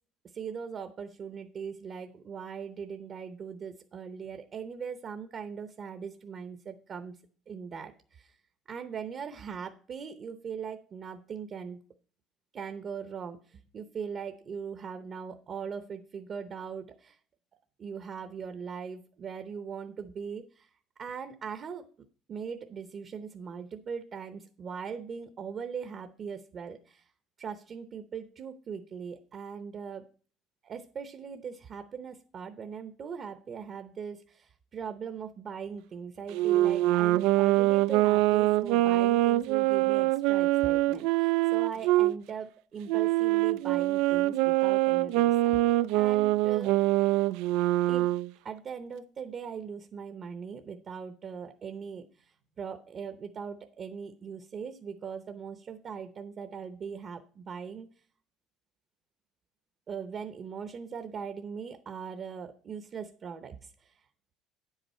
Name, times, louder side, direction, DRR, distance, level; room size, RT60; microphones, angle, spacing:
voice 1, 0.3-7.2 7.5-8.3 8.7-11.8 12.5-17.2 17.8-20.7 21.0-21.8 22.3-27.1 27.4-30.0 30.6-46.8 47.9-48.1 48.4-57.9 59.9-64.0, right 6 dB, 35° right, 8 dB, 0.7 m, -40 dB
Wind instrument woodwind instrument, 36.3-42.1 42.9-48.3, right 17 dB, 85° right, 0.3 m, -24 dB
9.4 x 8.1 x 4.3 m, 0.43 s
cardioid pair, 155°, 0 cm